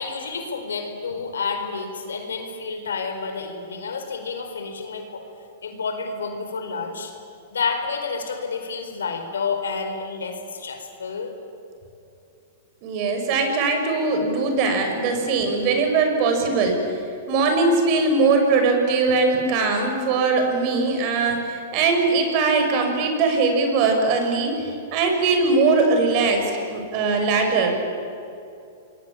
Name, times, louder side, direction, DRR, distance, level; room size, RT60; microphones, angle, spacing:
voice 1, 0.0-5.2 5.6-7.1 7.5-11.3, left 5 dB, 90° left, 6 dB, 4.6 m, -29 dB
voice 2, 12.8-16.8 17.3-24.5 24.9-27.7, right 4 dB, 45° right, 4 dB, 6.6 m, -21 dB
26.5 x 22.5 x 8.9 m, 2.7 s
hypercardioid pair, 120°, 0 cm